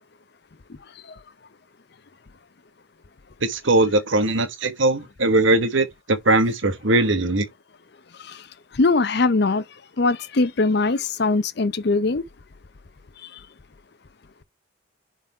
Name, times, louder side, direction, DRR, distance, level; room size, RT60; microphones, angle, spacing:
voice 1, 3.4-7.4, right 2 dB, 75° right, 1.3 m, -20 dB
voice 2, 8.8-9.6 10.0-12.2, left 3 dB, 55° left, 0.6 m, -21 dB
7.3 x 4.1 x 4.3 m
head